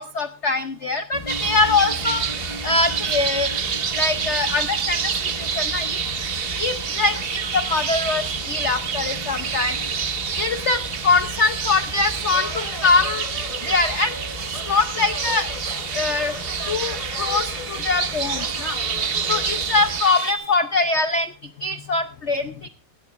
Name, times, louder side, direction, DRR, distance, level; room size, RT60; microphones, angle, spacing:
voice 1, 0.0-3.5 3.9-5.1 5.4-6.0 6.6-9.8 10.4-13.2 13.6-14.2 14.6-15.5 15.9-16.3 16.7-18.8 19.3-21.3 21.6-22.7, left 3 dB, 65° left, 9 dB, 0.7 m, -23 dB
sound 1, 1.1-20.0, left 2 dB, 20° left, 1.0 m, -36 dB
sound 2, 1.3-20.3, right 7 dB, 70° right, 0.5 m, -28 dB
20.0 x 18.0 x 2.5 m, 0.34 s
omnidirectional pair, 2.2 m